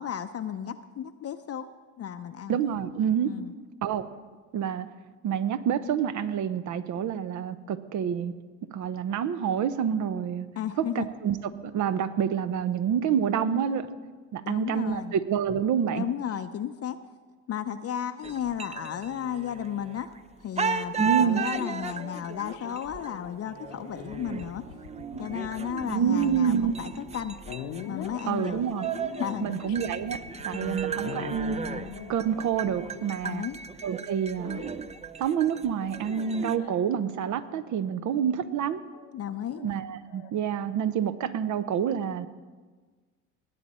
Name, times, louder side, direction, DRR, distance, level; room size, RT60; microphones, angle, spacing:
voice 1, 0.0-1.7 2.0-2.6 3.2-3.5 10.6-11.1 14.4-15.1 15.9-17.0 17.5-20.1 20.4-24.7 25.2-27.4 27.8-28.6 29.2-29.6 30.5-30.8 33.2-33.6 38.0-38.2 39.1-39.6, left 9 dB, 40° left, 8 dB, 0.7 m, -34 dB
voice 2, 2.5-3.3 3.8-4.0 4.5-4.9 5.2-8.3 8.7-10.5 10.9-13.9 14.3-16.0 21.0-21.4 25.9-26.7 28.2-28.9 29.4-30.2 30.4-31.6 32.1-33.4 33.8-34.6 35.2-38.8 39.6-42.3, right 8 dB, 55° right, 13 dB, 0.9 m, -27 dB
sound 1, 18.2-20.2 20.6-36.6, right 6 dB, 20° right, 0.5 m, -36 dB
sound 2, 21.0-33.6 34.4-35.0 35.9-37.4 38.9-40.3, left 9 dB, 80° left, 1.0 m, -43 dB
19.5 x 8.5 x 4.3 m, 1.4 s
supercardioid pair, 75°, 36 cm